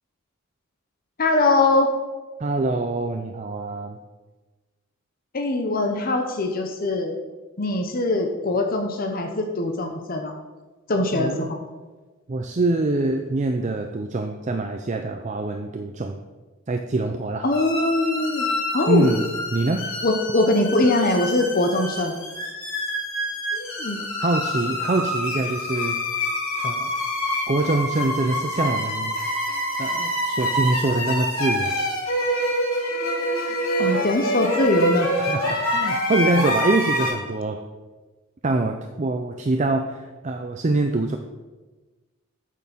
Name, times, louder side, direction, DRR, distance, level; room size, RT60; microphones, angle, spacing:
voice 1, 1.2-1.9 5.3-7.2 7.6-10.3 10.9-11.6 17.4-18.5 18.7-19.1 20.0-22.1 23.5-24.0 33.8-35.1, left 2 dB, 45° left, 4 dB, 0.9 m, -22 dB
voice 2, 2.4-4.0 11.1-11.5 12.3-16.2 16.7-17.5 18.9-19.2 19.5-19.9 24.2-26.0 26.6-26.9 27.5-29.2 29.8-31.8 35.2-37.6 38.4-41.2, right 2 dB, 35° right, 5 dB, 0.5 m, -24 dB
sound 1, 17.5-37.1, equal, 80° left, 2.9 m, -26 dB
8.7 x 6.5 x 5.9 m, 1.2 s
head